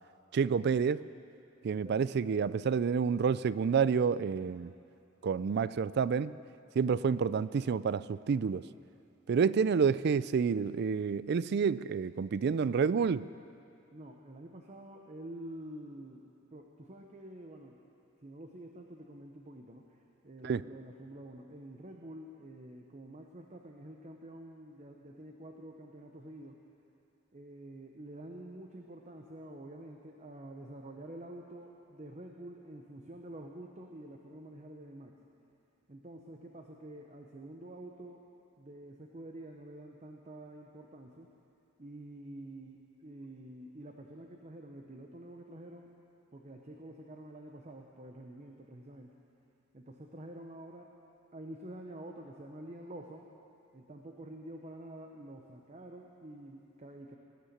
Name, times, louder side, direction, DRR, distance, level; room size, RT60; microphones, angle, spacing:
voice 1, 0.3-1.1 1.6-4.7 5.2-6.4 6.8-8.6 9.3-13.3 20.4-20.6, right 6 dB, 55° right, 17 dB, 0.3 m, -29 dB
voice 2, 13.9-17.8 18.2-26.6 27.3-35.2 35.9-38.3 38.6-41.3 41.8-45.9 46.3-49.1 49.7-50.9 51.3-53.3 53.7-57.2, right 1 dB, 35° right, 2 dB, 0.9 m, -48 dB
19.5 x 10.0 x 6.7 m, 2.6 s
head